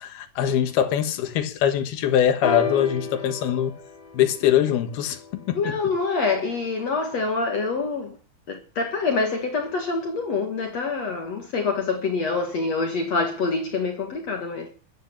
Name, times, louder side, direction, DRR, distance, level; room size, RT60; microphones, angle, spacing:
voice 1, 0.0-3.8 4.1-5.8, left 10 dB, 85° left, 3.5 m, -23 dB
sound 1, 2.4-6.3 7.2-7.3, left 7 dB, 35° left, 3.1 m, -31 dB
voice 2, 5.5-8.2 8.5-14.7, left 4 dB, 50° left, 2.9 m, -26 dB
15.0 x 12.0 x 7.2 m
omnidirectional pair, 4.3 m